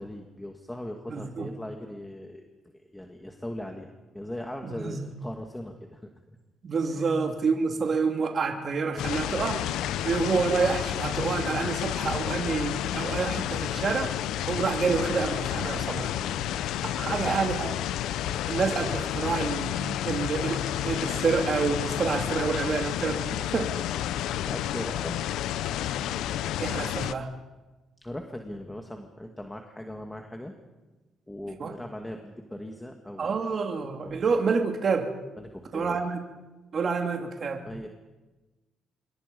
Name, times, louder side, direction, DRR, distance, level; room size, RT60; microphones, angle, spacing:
voice 1, 0.0-2.4 2.9-6.4 6.9-7.1 16.2-17.3 24.1-25.2 28.0-30.5 31.3-33.6 34.0-34.2 35.4-36.0 37.6-37.9, left 1 dB, 10° left, 3 dB, 2.2 m, -40 dB
voice 2, 1.1-1.5 4.6-5.1 6.6-9.7 10.0-14.2 14.5-16.1 16.9-17.7 18.3-23.7 26.6-27.3 31.6-31.7 33.2-35.1 35.7-36.2 36.7-37.6, right 5 dB, 50° right, 3 dB, 2.7 m, -28 dB
sound 1, 9.0-27.1, left 12 dB, 90° left, 0.8 m, -30 dB
27.5 x 23.5 x 5.4 m, 1.2 s
cardioid pair, 90°, 0 cm